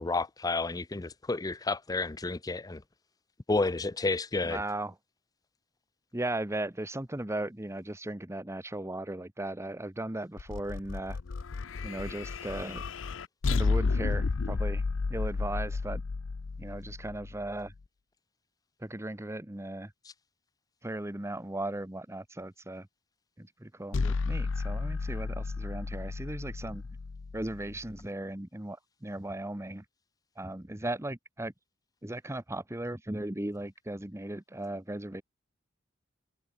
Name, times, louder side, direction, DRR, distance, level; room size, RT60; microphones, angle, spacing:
voice 1, 0.0-2.8 3.5-4.6 20.0-20.1 23.9-24.1, left 3 dB, 20° left, 0.5 m, -31 dB
voice 2, 4.4-4.9 6.1-11.2 11.8-12.8 13.5-14.8 15.1-16.0 16.6-17.7 18.8-19.9 20.8-22.9 23.4-24.0 24.2-26.8 27.3-29.8 30.4-31.5 32.0-35.2, right 1 dB, 15° right, 1.1 m, -37 dB
sound 1, 10.4-17.7 23.9-28.0, left 4 dB, 75° left, 0.6 m, -32 dB
head